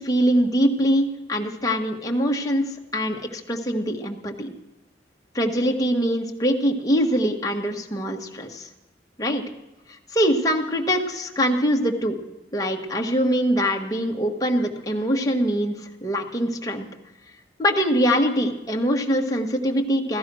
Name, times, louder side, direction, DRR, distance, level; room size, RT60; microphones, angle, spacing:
voice 1, 0.0-4.5 5.3-8.7 9.2-9.4 9.9-12.2 12.5-16.9 17.6-20.2, equal, 20° left, 0 dB, 1.5 m, -23 dB
16.0 x 14.0 x 6.2 m, 0.98 s
head